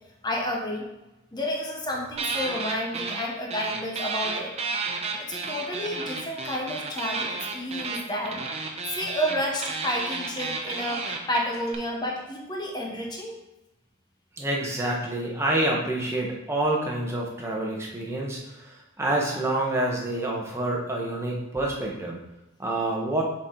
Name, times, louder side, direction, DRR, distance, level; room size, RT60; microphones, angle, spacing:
voice 1, 0.2-0.8 1.3-4.5 5.2-8.4 8.9-13.4, equal, 20° left, 0 dB, 0.9 m, -30 dB
sound 1, 2.2-3.3 3.5-11.8, right 4 dB, 30° right, 0.7 m, -32 dB
voice 2, 14.4-22.2 22.6-23.2, right 1 dB, 15° right, -2 dB, 1.0 m, -27 dB
7.1 x 4.3 x 3.8 m, 0.95 s
head